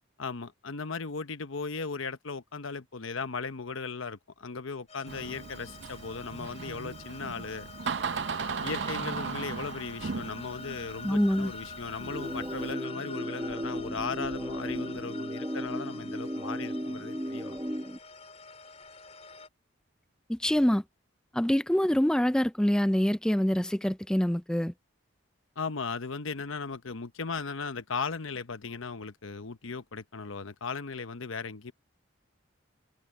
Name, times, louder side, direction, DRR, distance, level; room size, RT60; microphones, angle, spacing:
voice 1, 0.2-7.7 8.6-17.6 25.6-31.7, left 4 dB, 85° left, 1.0 m, -37 dB
sound 1, 4.9-19.5, left 4 dB, 30° left, 5.3 m, -47 dB
Door, 5.1-12.7, right 5 dB, 60° right, 0.6 m, -37 dB
voice 2, 11.0-11.5 20.3-20.8 21.3-24.7, equal, 5° left, 0.3 m, -25 dB
sound 2, 12.0-18.0, equal, 15° right, 1.3 m, -35 dB
head